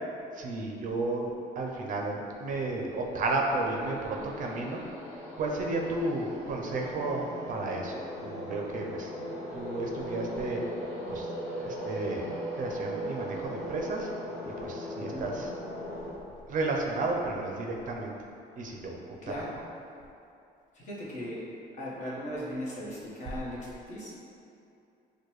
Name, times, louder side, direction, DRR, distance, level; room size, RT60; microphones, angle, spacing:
voice 1, 0.3-4.8 5.4-8.0 8.2-9.1 9.5-10.6 11.1-11.3 11.6-14.1 14.6-15.5 16.5-18.1 18.6-19.0, right 2 dB, 50° right, 0 dB, 0.5 m, -32 dB
sound 1, 2.6-16.1, equal, 15° left, 1.5 m, -39 dB
voice 2, 15.0-15.3 19.2-19.6 20.7-21.4 21.8-24.1, equal, 45° left, -6 dB, 1.0 m, -38 dB
4.6 x 2.2 x 3.0 m, 2.7 s
cardioid pair, 110°, 17 cm